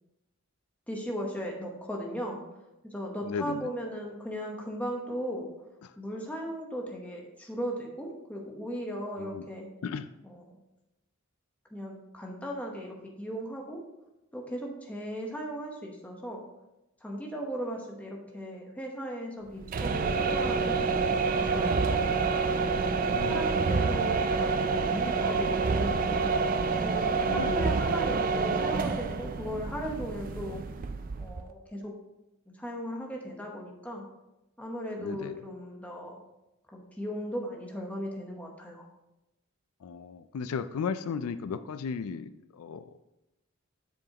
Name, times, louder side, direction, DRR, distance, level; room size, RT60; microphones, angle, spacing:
voice 1, 0.9-2.4 2.8-5.5 6.0-9.7 10.2-10.6 11.7-13.8 14.3-16.4 17.0-22.0 22.7-26.3 26.8-30.6 31.2-31.9 32.5-34.0 34.6-36.2 36.7-38.9, equal, 5° left, -1 dB, 1.0 m, -37 dB
voice 2, 3.2-3.7 5.8-6.0 9.2-9.5 9.8-10.1 23.1-23.5 27.3-27.6 35.0-35.4 39.8-43.0, left 6 dB, 80° left, 11 dB, 0.4 m, -35 dB
sound 1, 19.6-31.5, right 4 dB, 40° right, 0.3 m, -28 dB
7.8 x 7.0 x 2.9 m, 0.94 s
head